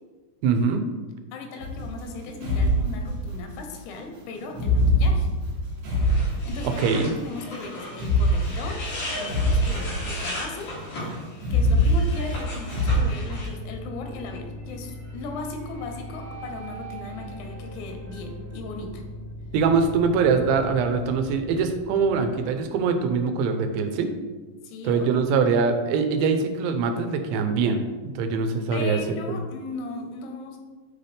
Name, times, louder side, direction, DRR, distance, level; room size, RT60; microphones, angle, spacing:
voice 1, 0.4-0.9 6.8-7.1 19.5-24.1 24.8-27.8 28.2-29.0 29.3-29.4, right 5 dB, 90° right, 6 dB, 2.9 m, -23 dB
voice 2, 1.3-5.3 6.5-8.8 9.1-11.1 11.5-19.0 24.6-25.1 28.7-30.6, left 3 dB, 90° left, 4 dB, 3.1 m, -37 dB
sound 1, 1.6-3.6 4.5-7.0 7.9-10.4 11.4-13.0, equal, 65° right, 3.7 m, -23 dB
sound 2, 5.9-13.5, left 1 dB, 50° left, 3.2 m, -36 dB
sound 3, 12.7-23.6, equal, 40° right, 1.5 m, -40 dB
8.7 x 4.2 x 3.4 m, 1.3 s
omnidirectional pair, 5.0 m